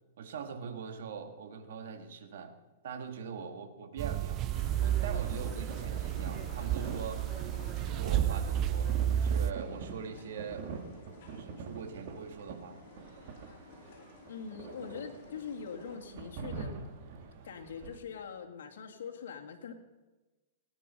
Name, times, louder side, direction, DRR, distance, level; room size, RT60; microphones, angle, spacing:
voice 1, 0.2-2.5 2.8-7.2 7.8-10.7 11.3-12.8, right 6 dB, 70° right, 7 dB, 1.8 m, -42 dB
sound 1, 4.0-9.5, right 10 dB, 30° right, 0.4 m, -31 dB
sound 2, 4.5-16.0, left 4 dB, 55° left, 3.7 m, -53 dB
sound 3, 5.2-18.0, right 5 dB, 50° right, 2.1 m, -45 dB
voice 2, 13.2-16.7 17.4-19.7, left 6 dB, 85° left, 2 dB, 2.1 m, -44 dB
18.0 x 10.0 x 5.5 m, 1.1 s
hypercardioid pair, 150°, 0 cm